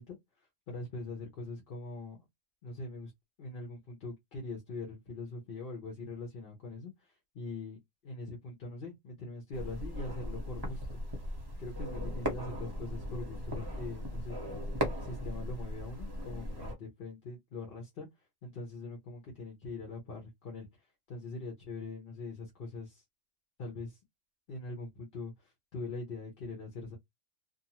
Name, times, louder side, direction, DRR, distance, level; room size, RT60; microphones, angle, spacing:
voice 1, 0.0-2.2 2.6-3.1 3.4-10.9 11.6-14.4 14.8-18.1 18.4-23.0 23.6-24.0 24.5-27.0, left 3 dB, 50° left, 1.0 m, -42 dB
sound 1, 9.5-16.8, equal, 20° right, 0.7 m, -38 dB
2.6 x 2.3 x 2.8 m
omnidirectional pair, 1.3 m